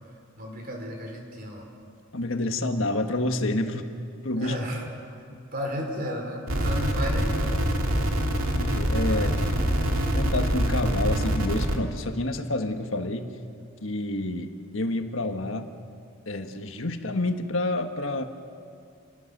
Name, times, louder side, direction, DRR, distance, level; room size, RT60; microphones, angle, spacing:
voice 1, 0.4-1.7 4.4-5.2 5.5-7.6 9.1-9.5, equal, 45° right, 2 dB, 4.3 m, -34 dB
voice 2, 2.1-3.9 4.2-4.5 5.3-5.4 8.5-9.3 10.1-13.3 13.8-15.7 16.3-18.2, left 2 dB, 70° left, 6 dB, 1.5 m, -28 dB
sound 1, 6.5-11.8, equal, 90° right, 2.3 m, -25 dB
29.0 x 18.5 x 6.7 m, 2.4 s
head